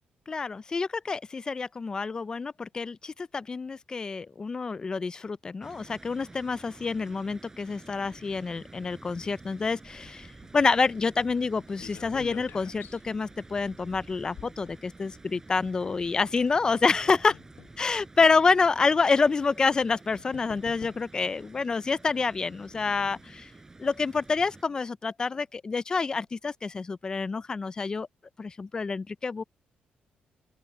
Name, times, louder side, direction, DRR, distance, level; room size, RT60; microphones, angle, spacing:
voice 1, 0.3-17.3 17.8-23.5 23.8-28.1 28.4-29.4, left 4 dB, 25° left, 0.3 m, -27 dB
sound 1, 5.6-24.6, right 3 dB, 15° right, 6.1 m, -50 dB
sound 2, 9.9-15.4 16.3-17.8 18.6-18.7 19.7-19.8 20.1-21.3 22.3-23.4 23.8-23.9 24.2-24.3, left 10 dB, 75° left, 0.9 m, -50 dB
open air
cardioid pair, 160°, 3 cm